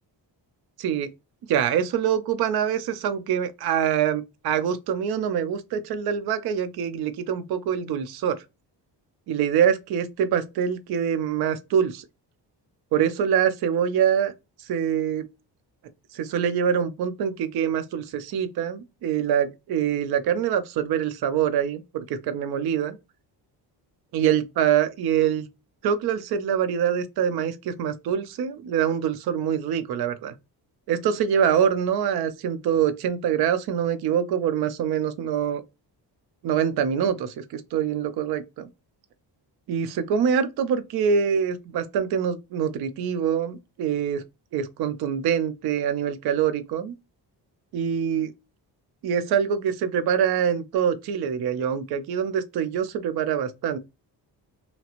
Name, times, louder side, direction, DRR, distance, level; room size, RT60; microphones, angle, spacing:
voice 1, 1.5-8.4 9.3-12.0 12.9-14.3 14.7-15.2 16.1-23.0 24.1-25.5 25.8-30.3 30.9-35.6 36.4-38.7 39.7-44.2 44.5-46.9 47.7-48.3 49.0-53.8, right 8 dB, 60° right, 0.5 m, -24 dB
2.9 x 2.4 x 2.8 m
wide cardioid pair, 155°, 43 cm